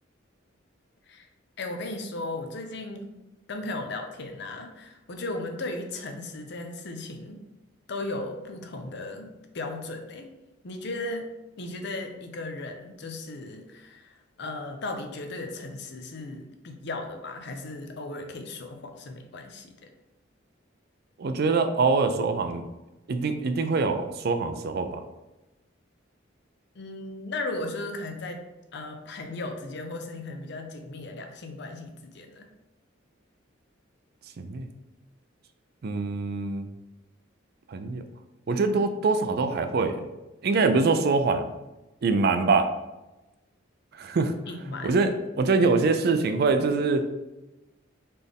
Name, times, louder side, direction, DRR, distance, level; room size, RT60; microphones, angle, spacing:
voice 1, 1.6-3.1 3.5-7.4 7.9-10.3 10.6-11.3 11.6-19.9 26.8-28.4 28.7-32.5 44.5-45.0, left 2 dB, 60° left, 5 dB, 0.6 m, -36 dB
voice 2, 21.2-22.6 23.1-25.0 34.4-34.7 35.8-36.7 37.7-38.0 38.5-40.1 40.4-41.5 42.0-42.7 44.0-44.3 44.8-45.1 45.4-47.0, right 4 dB, 55° right, 8 dB, 0.4 m, -24 dB
4.2 x 3.3 x 3.5 m, 1.0 s
head